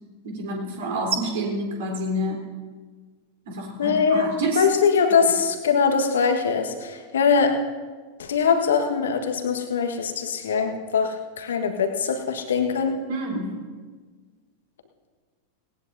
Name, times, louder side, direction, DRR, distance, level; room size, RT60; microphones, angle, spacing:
voice 1, 0.2-2.4 3.5-4.7 13.1-13.6, right 1 dB, 55° right, 0 dB, 3.7 m, -28 dB
voice 2, 3.8-4.3 4.5-7.6 8.2-13.0, left 6 dB, 65° left, 5 dB, 1.5 m, -22 dB
18.5 x 18.5 x 2.7 m, 1.4 s
figure-of-eight pair, 90°, 0 cm